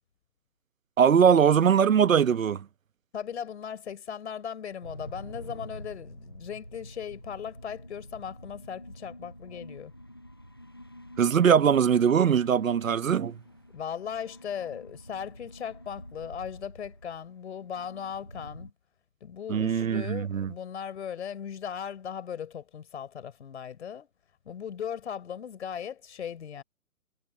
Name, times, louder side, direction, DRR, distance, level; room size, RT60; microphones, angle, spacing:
voice 1, 1.0-2.7 11.2-13.4 19.5-20.5, right 7 dB, 65° right, 1.1 m, -21 dB
voice 2, 3.1-9.9 13.7-18.7 19.2-24.1 24.5-26.6, left 8 dB, 50° left, 5.1 m, -38 dB
sound 1, 4.8-18.7, equal, 20° left, 0.4 m, -47 dB
figure-of-eight pair, 145°, 43 cm